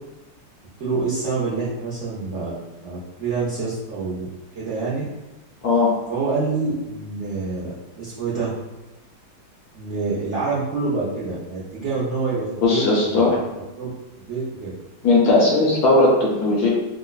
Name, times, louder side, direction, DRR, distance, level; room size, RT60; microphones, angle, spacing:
voice 1, 0.8-2.6 2.8-4.3 4.6-5.0 6.1-8.5 9.7-13.4 13.8-13.9 14.2-14.7, right 4 dB, 70° right, -9 dB, 0.6 m, -26 dB
voice 2, 12.6-13.4 15.0-16.7, left 2 dB, 70° left, -4 dB, 0.9 m, -17 dB
4.8 x 2.1 x 2.3 m, 1.0 s
omnidirectional pair, 2.0 m